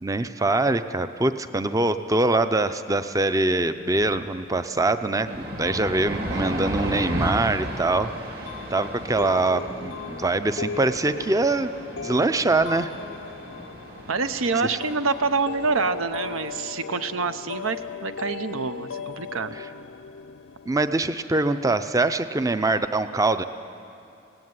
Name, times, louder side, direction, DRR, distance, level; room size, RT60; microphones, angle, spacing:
voice 1, 0.0-11.7 12.0-12.9 14.7-14.8 19.5-19.7 20.7-23.4, right 2 dB, 15° right, 11 dB, 0.5 m, -24 dB
sound 1, 3.6-3.7 4.0-16.6, equal, 50° right, 2.3 m, -35 dB
sound 2, 8.5-21.0, left 6 dB, 70° left, 0.5 m, -38 dB
voice 2, 14.1-19.5, right 4 dB, 80° right, 11 dB, 0.8 m, -26 dB
18.5 x 17.0 x 9.6 m, 2.7 s
head